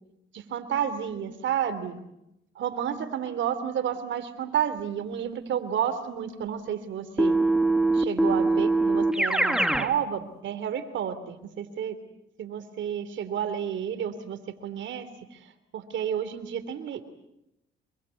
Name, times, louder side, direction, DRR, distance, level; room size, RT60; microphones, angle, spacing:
voice 1, 0.3-2.0 2.5-7.4 7.9-12.0 12.4-17.1, right 9 dB, 70° right, 10 dB, 3.1 m, -31 dB
Keyboard (musical), 7.2-9.9, right 2 dB, 5° right, 1.8 m, -22 dB
25.5 x 24.0 x 8.4 m, 0.85 s
cardioid pair, 90°, 20 cm